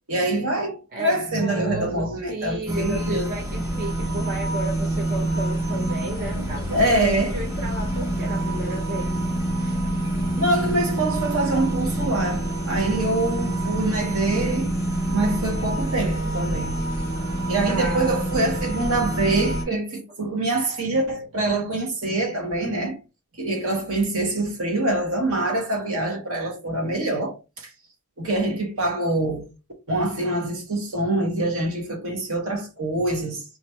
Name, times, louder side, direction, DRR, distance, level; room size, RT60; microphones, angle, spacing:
voice 1, 0.1-3.3 6.7-7.4 10.4-14.7 15.1-16.8 17.5-23.0 23.4-27.7 28.2-29.5 29.9-33.4, right 2 dB, 65° right, 1.1 m, -25 dB
voice 2, 0.9-9.2 9.6-9.8 17.7-18.3, right 2 dB, 40° right, 0.6 m, -33 dB
sound 1, 2.7-19.6, right 1 dB, 15° right, 1.0 m, -26 dB
2.9 x 2.4 x 4.3 m
head